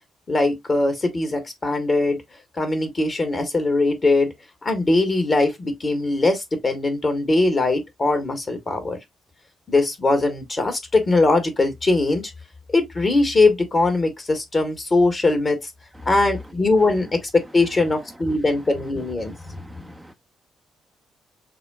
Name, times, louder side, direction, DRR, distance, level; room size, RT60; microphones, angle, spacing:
voice 1, 0.3-2.2 2.6-4.3 4.6-9.0 9.7-12.3 12.7-15.6 16.1-19.9, left 2 dB, 35° left, 1.6 m, -21 dB
voice 2, 19.2-20.1, right 1 dB, 10° right, 0.6 m, -47 dB
6.6 x 2.3 x 2.3 m
figure-of-eight pair, 40°, 0 cm